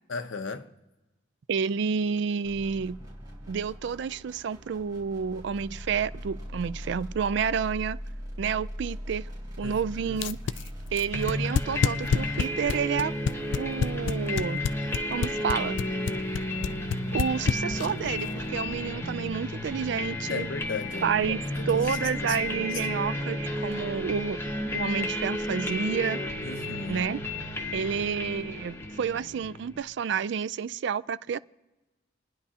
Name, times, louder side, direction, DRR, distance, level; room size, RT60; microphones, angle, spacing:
voice 1, 0.1-0.7 9.6-9.8 10.0-10.2 20.3-21.8 22.2-22.8 26.4-27.0, left 4 dB, 85° left, 0.8 m, -36 dB
voice 2, 1.5-3.0 3.5-8.0 8.4-9.3 9.6-10.4 10.9-13.1 13.6-14.6 15.1-15.8 17.1-20.5 21.0-21.4 21.7-24.4 24.7-26.2 26.9-27.2 27.7-31.4, right 6 dB, 65° right, 0.4 m, -29 dB
sound 1, 2.4-12.9, equal, 20° right, 3.4 m, -41 dB
sound 2, 10.1-18.1, left 6 dB, 65° left, 0.3 m, -27 dB
sound 3, 11.1-29.8, left 1 dB, 15° left, 1.1 m, -32 dB
29.5 x 10.0 x 2.8 m
head